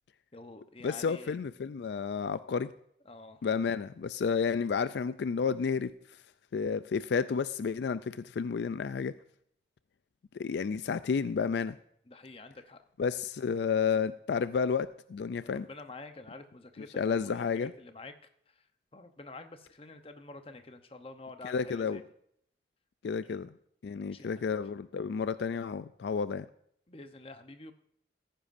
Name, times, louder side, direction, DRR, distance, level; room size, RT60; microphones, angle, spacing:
voice 1, 0.3-1.4 3.1-3.4 12.1-12.8 15.4-18.1 18.9-22.0 23.3-23.4 23.9-24.6 26.9-27.7, left 3 dB, 30° left, 8 dB, 0.8 m, -48 dB
voice 2, 0.8-2.7 3.4-5.9 6.5-9.1 10.4-11.8 13.0-15.7 16.8-17.7 21.4-22.0 23.0-23.5 23.8-26.5, left 6 dB, 75° left, 14 dB, 0.3 m, -31 dB
15.0 x 10.0 x 2.6 m, 0.69 s
head